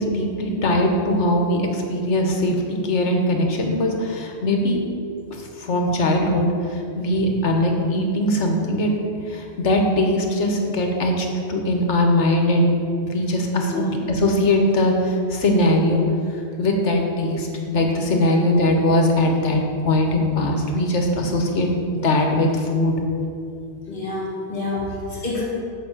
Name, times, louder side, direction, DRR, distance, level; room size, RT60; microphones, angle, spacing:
voice 1, 0.0-4.8 5.3-8.9 9.3-12.7 13.0-16.0 16.6-23.0, left 1 dB, 80° left, 2 dB, 1.5 m, -21 dB
voice 2, 23.9-25.4, left 2 dB, 50° left, -4 dB, 2.1 m, -28 dB
7.8 x 5.4 x 7.3 m, 2.5 s
omnidirectional pair, 1.2 m